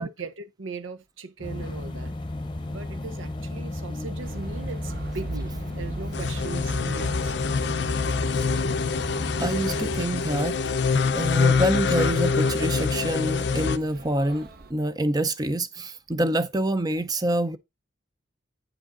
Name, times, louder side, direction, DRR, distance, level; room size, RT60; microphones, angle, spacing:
voice 1, 0.0-2.1 2.7-7.3, right 4 dB, 85° right, 0.8 m, -39 dB
sound 1, 1.4-10.0, left 1 dB, 25° left, 0.8 m, -34 dB
sound 2, 4.2-14.7, right 2 dB, 50° right, 0.8 m, -41 dB
sound 3, 6.1-13.8, left 4 dB, 60° left, 0.5 m, -25 dB
voice 2, 9.4-10.6 11.1-17.6, right 1 dB, 20° right, 0.5 m, -26 dB
8.8 x 4.9 x 3.7 m
head